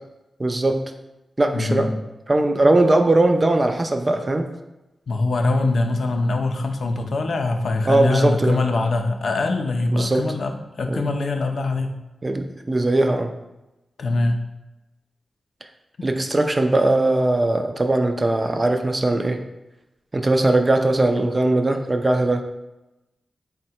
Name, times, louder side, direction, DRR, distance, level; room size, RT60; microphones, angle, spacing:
voice 1, 0.4-0.8 1.4-1.9 2.3-4.5 7.9-8.6 9.9-10.2 10.9-11.1 12.2-13.3 16.0-19.4 20.1-22.4, right 2 dB, 30° right, 6 dB, 0.4 m, -20 dB
voice 2, 1.5-2.0 5.1-11.9 14.0-14.4 16.0-16.1, left 2 dB, 70° left, 4 dB, 0.4 m, -23 dB
3.6 x 2.1 x 4.1 m, 1.0 s
cardioid pair, 65°, 0 cm